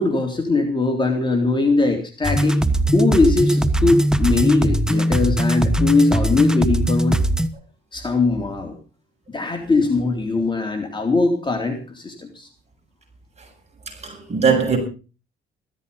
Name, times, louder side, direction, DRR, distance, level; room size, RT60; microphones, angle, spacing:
voice 1, 0.0-2.6 2.9-7.2 7.9-8.7 9.3-12.5, left 3 dB, 25° left, 3.8 m, -20 dB
sound 1, 2.2-7.5, right 1 dB, 5° right, 1.4 m, -20 dB
voice 2, 13.9-14.8, right 5 dB, 35° right, 7.8 m, -20 dB
16.0 x 14.0 x 5.5 m
cardioid pair, 90°, 20 cm